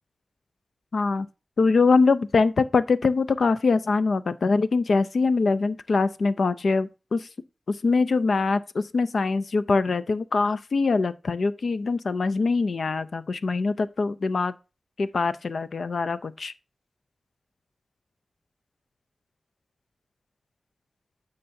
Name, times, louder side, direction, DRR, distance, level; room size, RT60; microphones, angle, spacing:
voice 1, 0.9-1.3 1.6-7.3 7.8-14.5 15.0-16.5, left 4 dB, 75° left, 0.5 m, -23 dB
10.0 x 6.6 x 2.7 m
wide cardioid pair, 75°, 0 cm